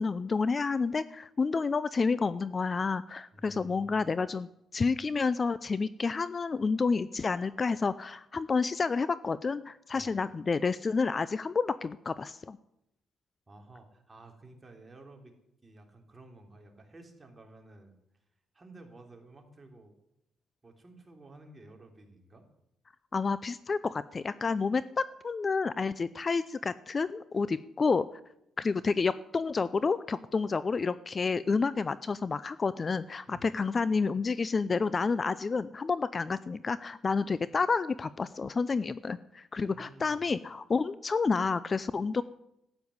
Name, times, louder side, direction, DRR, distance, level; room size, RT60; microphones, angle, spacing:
voice 1, 0.0-12.6 23.1-28.0 28.6-42.2, left 4 dB, 35° left, 16 dB, 0.5 m, -29 dB
voice 2, 3.3-4.1 9.9-10.2 13.5-15.3 15.6-18.0 18.5-20.0 20.6-22.5 33.3-33.5 39.6-40.3, right 2 dB, 25° right, 3 dB, 3.5 m, -53 dB
13.0 x 9.1 x 9.6 m, 0.83 s
cardioid pair, 90°, 0 cm